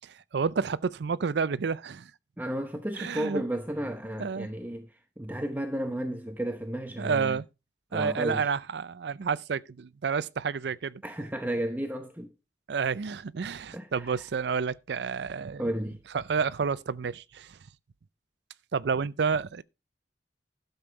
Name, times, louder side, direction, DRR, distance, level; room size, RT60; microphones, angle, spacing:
voice 1, 0.1-2.1 2.9-3.4 4.2-4.5 7.0-7.4 7.9-11.0 12.7-15.7 16.1-17.6 18.7-19.6, right 5 dB, 70° right, 0.5 m, -30 dB
voice 2, 2.4-7.4 7.9-8.5 11.0-12.3 13.4-14.3 15.6-16.0, right 1 dB, 10° right, 0.8 m, -33 dB
12.0 x 7.0 x 4.5 m
head